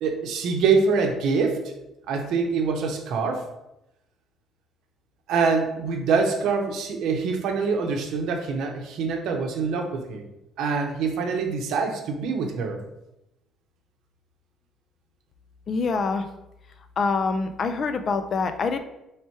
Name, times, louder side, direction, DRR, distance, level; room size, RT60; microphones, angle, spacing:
voice 1, 0.0-1.6 2.1-3.4 5.3-10.2 10.6-12.8, right 5 dB, 75° right, 3 dB, 0.7 m, -25 dB
voice 2, 15.7-16.3 17.0-18.8, left 4 dB, 40° left, 8 dB, 0.3 m, -25 dB
3.2 x 3.0 x 4.5 m, 0.89 s
cardioid pair, 150°, 0 cm